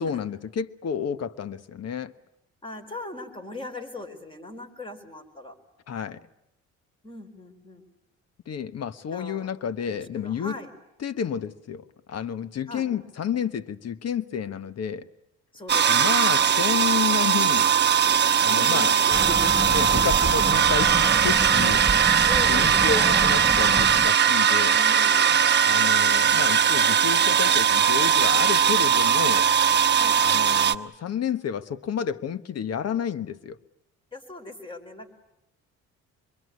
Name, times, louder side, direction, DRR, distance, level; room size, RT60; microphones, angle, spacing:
voice 1, 0.0-2.1 5.9-6.2 8.5-10.6 11.0-15.1 15.9-17.7 18.1-19.0 19.6-21.8 22.5-24.8 25.6-29.5 30.2-33.6, left 7 dB, 55° left, 13 dB, 1.2 m, -30 dB
voice 2, 2.6-5.5 7.0-7.9 9.1-9.5 9.9-10.7 12.7-12.9 15.5-16.2 18.5-19.6 22.2-23.3 24.7-25.3 29.9-30.2 34.1-35.1, left 2 dB, 15° left, 7 dB, 4.7 m, -39 dB
sound 1, 15.7-30.7, right 8 dB, 35° right, 1.0 m, -20 dB
sound 2, 19.1-24.1, right 2 dB, 10° right, 1.3 m, -29 dB
26.0 x 23.0 x 9.5 m, 0.87 s
cardioid pair, 90°, 30 cm